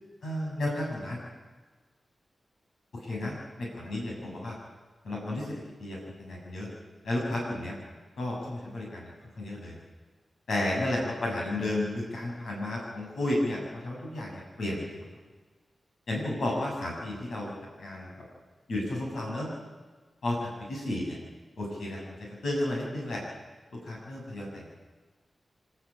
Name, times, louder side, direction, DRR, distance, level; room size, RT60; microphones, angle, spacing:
voice 1, 0.2-1.2 3.0-4.6 5.0-6.7 7.0-7.8 8.2-9.1 9.4-9.7 10.5-15.0 16.1-17.5 17.8-18.1 18.7-19.5 20.2-21.2 21.6-22.1 22.4-23.2 23.8-24.7, left 1 dB, 85° left, -3 dB, 6.8 m, -32 dB
27.5 x 12.5 x 8.7 m, 1.3 s
cardioid pair, 55°, 0 cm